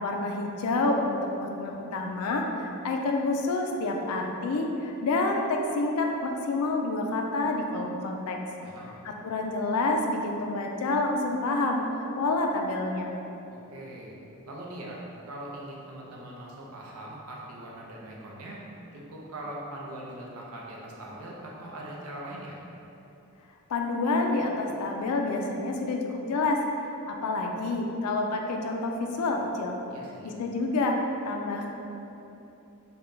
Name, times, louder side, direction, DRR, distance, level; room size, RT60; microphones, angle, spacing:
voice 1, 0.0-8.4 9.0-11.8 12.2-13.1 23.7-26.6 27.1-29.8 30.2-31.0 31.3-31.7, left 2 dB, 80° left, 2 dB, 0.4 m, -28 dB
voice 2, 8.6-9.0 13.5-14.1 14.5-18.6 18.9-22.6 29.9-30.3, right 1 dB, 80° right, -3 dB, 0.6 m, -41 dB
4.0 x 2.2 x 3.3 m, 2.9 s
head